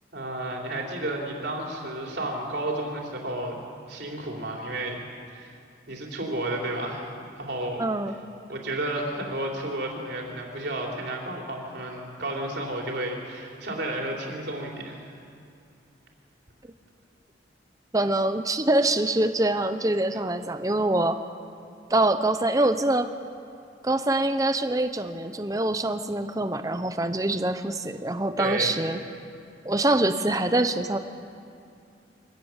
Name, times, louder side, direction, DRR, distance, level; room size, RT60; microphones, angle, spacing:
voice 1, 0.1-3.6 3.9-5.0 5.3-5.5 5.9-7.8 8.5-15.0 28.4-28.8, right 1 dB, 65° right, 0 dB, 3.4 m, -32 dB
voice 2, 7.8-8.2 17.9-21.2 21.9-23.1 23.8-29.0 29.6-31.0, right 2 dB, 20° right, 9 dB, 0.7 m, -24 dB
23.0 x 17.0 x 7.3 m, 2.5 s
head